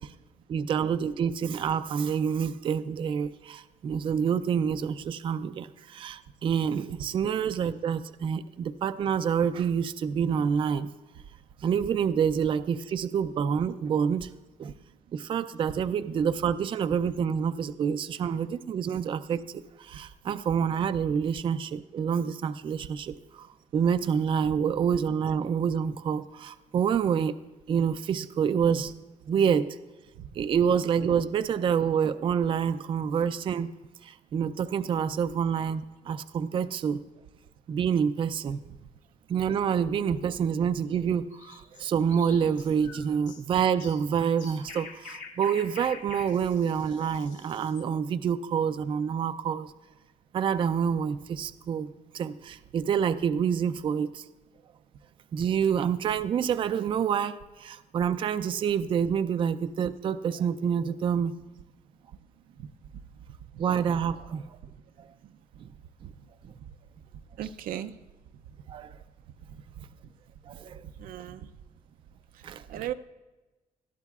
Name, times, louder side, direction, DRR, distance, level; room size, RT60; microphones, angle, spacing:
voice 1, 0.5-10.9 11.6-14.3 14.6-14.7 15.1-23.5 23.7-27.3 27.7-29.0 29.3-29.6 30.4-33.7 34.0-37.0 37.7-38.6 39.3-49.7 50.3-51.9 52.1-54.2 55.3-57.3 57.6-61.3 63.6-64.4 67.4-67.5 68.7-68.9 70.5-70.8 72.4-72.9, right 7 dB, 40° right, 11 dB, 0.4 m, -27 dB
sound 1, 41.3-47.9, left 5 dB, 65° left, 1.5 m, -46 dB
voice 2, 67.4-67.9 71.0-71.5 72.7-72.9, right 11 dB, 90° right, 10 dB, 0.6 m, -35 dB
19.5 x 13.5 x 2.4 m, 1.2 s
cardioid pair, 155°, 14 cm